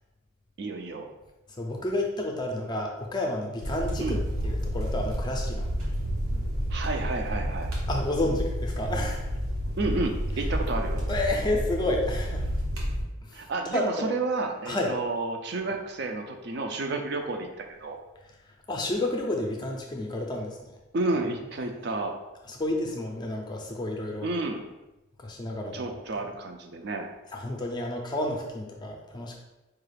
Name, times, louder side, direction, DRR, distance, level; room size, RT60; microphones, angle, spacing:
voice 1, 0.6-1.1 4.0-4.2 6.7-7.7 9.8-11.1 13.3-18.0 20.9-22.1 24.2-24.6 25.7-27.1, right 2 dB, 50° right, 4 dB, 0.4 m, -31 dB
voice 2, 1.6-4.2 4.4-5.7 7.9-9.2 11.1-12.5 13.2-13.4 13.7-14.1 14.7-14.9 18.7-20.6 22.5-24.3 25.2-25.9 27.3-29.4, left 1 dB, 20° left, 1 dB, 0.4 m, -30 dB
sound 1, 3.6-13.0, equal, 85° right, 1.0 m, -30 dB
4.6 x 2.4 x 3.2 m, 1.0 s
head